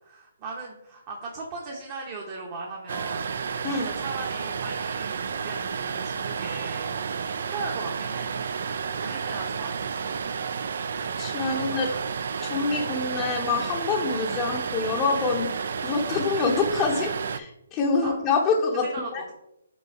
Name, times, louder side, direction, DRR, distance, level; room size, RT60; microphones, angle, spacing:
voice 1, 0.0-3.3 3.7-8.4 9.0-10.3 11.5-12.0 16.1-16.2 18.0-18.2 18.8-19.3, right 3 dB, 30° right, -1 dB, 0.9 m, -38 dB
sound 1, 2.9-17.4, right 6 dB, 60° right, 0.4 m, -31 dB
voice 2, 11.2-11.9 12.4-15.5 15.8-18.9 19.1-19.2, left 4 dB, 20° left, -1 dB, 0.7 m, -26 dB
5.4 x 3.9 x 4.6 m, 0.86 s
hypercardioid pair, 155°, 0 cm